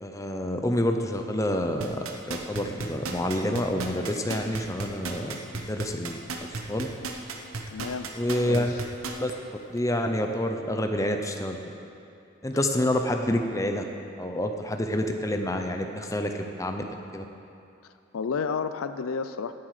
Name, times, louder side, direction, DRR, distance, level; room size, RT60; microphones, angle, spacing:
voice 1, 0.0-6.2 6.7-6.9 8.2-8.7 9.2-11.6 12.4-13.8 14.2-16.8 17.1-17.3, left 1 dB, 15° left, 5 dB, 0.6 m, -28 dB
sound 1, 1.8-9.3 9.8-9.9, right 4 dB, 85° right, 1.0 m, -34 dB
voice 2, 7.7-8.1 8.5-8.8 18.1-19.5, left 5 dB, 85° left, 11 dB, 0.5 m, -31 dB
17.0 x 7.6 x 5.0 m, 2.6 s
head